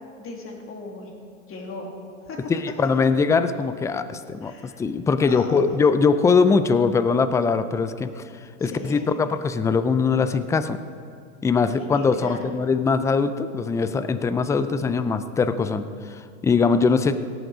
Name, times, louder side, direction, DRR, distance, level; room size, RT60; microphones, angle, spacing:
voice 1, 0.2-1.1 1.5-1.9 2.2-2.4 4.4-4.8 5.3-5.5 8.6-9.1 11.7-12.5, left 3 dB, 35° left, 0 dB, 2.8 m, -38 dB
voice 2, 2.5-8.2 8.6-10.8 11.4-17.1, left 5 dB, 10° left, 12 dB, 0.3 m, -21 dB
18.0 x 8.0 x 4.9 m, 2.3 s
hypercardioid pair, 105°, 40 cm